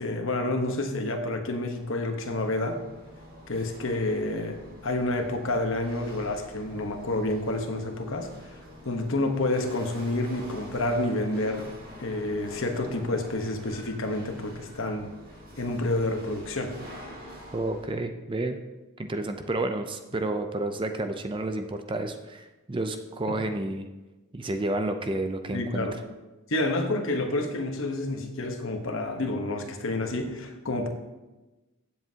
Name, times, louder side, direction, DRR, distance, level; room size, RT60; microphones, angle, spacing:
voice 1, 0.0-2.8 3.5-8.5 8.8-11.7 12.0-15.1 15.6-16.7 23.3-23.4 25.5-26.0 26.5-30.9, left 2 dB, 60° left, 5 dB, 1.1 m, -29 dB
Chatter / Hiss / Rattle, 1.2-17.9, equal, 40° right, 2.3 m, -47 dB
voice 2, 17.5-18.6 19.0-23.9 24.3-25.9, right 2 dB, 20° right, 7 dB, 0.5 m, -30 dB
15.0 x 7.6 x 2.8 m, 1.1 s
head